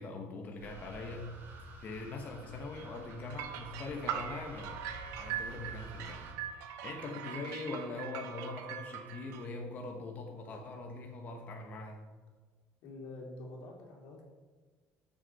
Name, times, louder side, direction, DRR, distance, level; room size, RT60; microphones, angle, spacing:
voice 1, 0.0-1.4 1.8-4.8 5.2-6.3 6.8-12.1, left 3 dB, 35° left, 2 dB, 1.1 m, -42 dB
sound 1, 0.6-6.3, right 2 dB, 45° right, 2.5 m, -49 dB
sound 2, 2.8-9.5, right 9 dB, 90° right, 1.0 m, -42 dB
voice 2, 12.8-14.2, left 2 dB, 85° left, 0 dB, 2.7 m, -46 dB
13.5 x 6.4 x 4.2 m, 1.4 s
cardioid pair, 165°, 5 cm